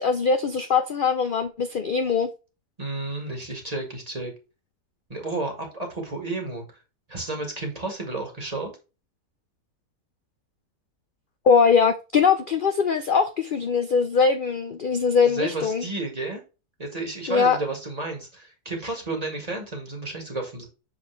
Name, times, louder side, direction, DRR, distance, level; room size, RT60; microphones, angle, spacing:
voice 1, 0.0-2.3 11.5-15.8 17.3-17.6, left 5 dB, 55° left, 0.6 m, -21 dB
voice 2, 2.8-4.3 5.1-6.6 7.1-8.7 15.2-16.4 16.8-20.7, right 2 dB, 25° right, 1.9 m, -32 dB
7.1 x 4.2 x 3.3 m
omnidirectional pair, 1.7 m